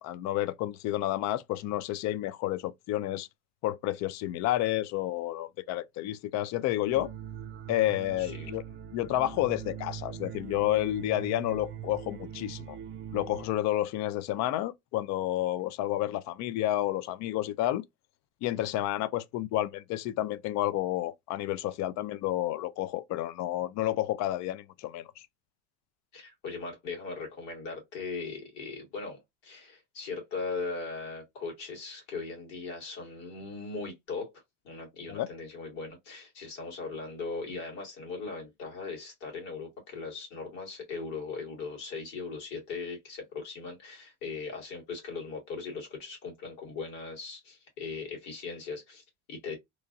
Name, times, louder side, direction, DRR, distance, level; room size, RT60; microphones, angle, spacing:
voice 1, 0.0-3.3 3.6-7.1 7.7-8.6 8.9-12.8 13.1-17.8 18.4-25.2 35.1-35.3, left 14 dB, 55° left, 0.4 m, -30 dB
sound 1, 6.9-13.5, right 9 dB, 35° right, 0.4 m, -42 dB
voice 2, 8.2-8.5 26.1-34.3 34.6-49.6, left 4 dB, 85° left, 1.9 m, -39 dB
3.1 x 2.3 x 2.4 m
supercardioid pair, 95°, 35 cm